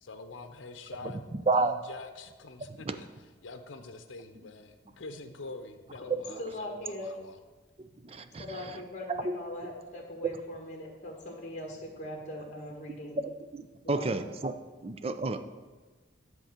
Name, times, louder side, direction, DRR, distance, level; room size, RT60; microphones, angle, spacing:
voice 1, 0.0-3.1 3.4-7.4, left 3 dB, 90° left, 8 dB, 0.7 m, -45 dB
voice 2, 1.0-1.7 2.9-3.0 6.3-6.4 8.0-8.8 9.1-9.3 13.2-14.5 14.8-15.4, right 3 dB, 30° right, 9 dB, 0.5 m, -31 dB
voice 3, 6.4-7.1 8.4-13.2 13.8-14.2, left 1 dB, 35° left, 0 dB, 1.5 m, -40 dB
10.5 x 3.8 x 7.3 m, 1.3 s
head